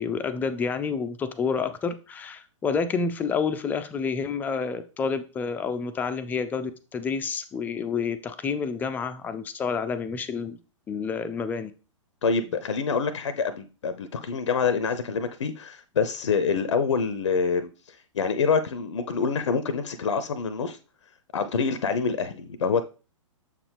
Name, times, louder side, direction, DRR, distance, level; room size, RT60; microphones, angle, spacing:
voice 1, 0.0-10.6 10.9-11.7, left 5 dB, 10° left, 0.4 m, -29 dB
voice 2, 12.2-20.8 21.3-22.8, left 5 dB, 60° left, 0.5 m, -26 dB
7.0 x 4.9 x 3.3 m
figure-of-eight pair, 110°, 17 cm